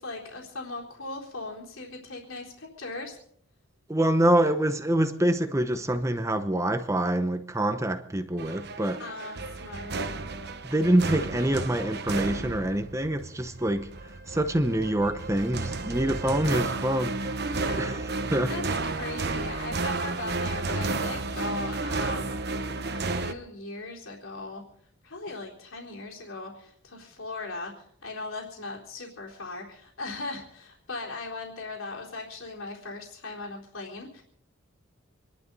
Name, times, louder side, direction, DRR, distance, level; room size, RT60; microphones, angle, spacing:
voice 1, 0.0-3.2 9.0-10.0 17.4-18.0 18.5-22.4 22.9-24.6 25.0-34.2, left 3 dB, 75° left, 3.9 m, -38 dB
voice 2, 3.9-9.0 10.6-13.9 14.3-17.1 17.8-18.5, right 1 dB, 15° right, 0.9 m, -25 dB
sound 1, 8.4-23.3, right 3 dB, 50° right, 1.0 m, -32 dB
27.0 x 11.5 x 4.1 m
head